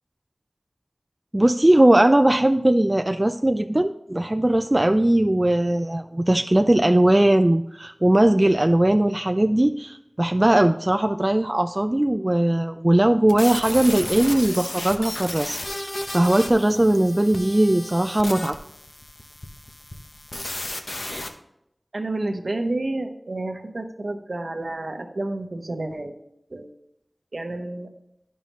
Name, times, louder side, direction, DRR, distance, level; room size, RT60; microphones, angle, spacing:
voice 1, 1.3-18.6, right 1 dB, 25° right, 7 dB, 0.3 m, -19 dB
sound 1, 13.3-21.3, left 1 dB, 50° left, 0.8 m, -34 dB
voice 2, 21.9-26.2 26.5-26.7 27.3-27.9, right 2 dB, 65° right, 5 dB, 0.9 m, -30 dB
11.0 x 5.5 x 3.0 m, 0.80 s
wide cardioid pair, 60°, 0 cm